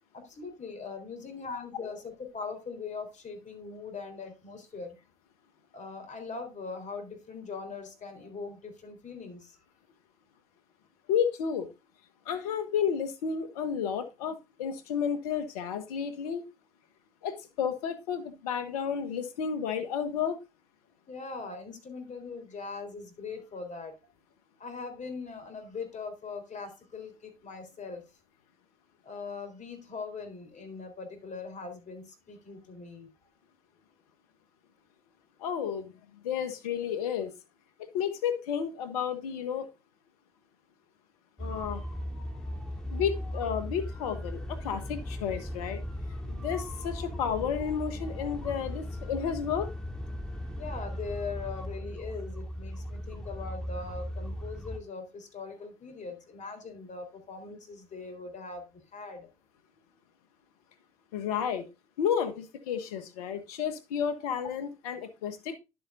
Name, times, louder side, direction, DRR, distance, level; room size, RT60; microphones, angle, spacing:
voice 1, 0.1-5.0 5.7-9.6 21.1-23.9 24.6-28.0 29.0-33.1 50.6-59.3, left 4 dB, 40° left, 6 dB, 4.0 m, -41 dB
voice 2, 11.1-11.7 12.2-16.4 17.2-20.4 35.4-36.0 36.2-37.3 37.9-39.7 41.4-41.8 42.9-45.8 46.3-49.7 61.1-61.6 62.0-65.6, left 7 dB, 80° left, 9 dB, 1.4 m, -32 dB
sound 1, 41.4-54.8, left 1 dB, 5° left, 3.0 m, -37 dB
11.5 x 7.7 x 2.5 m, 0.26 s
hypercardioid pair, 60°, 19 cm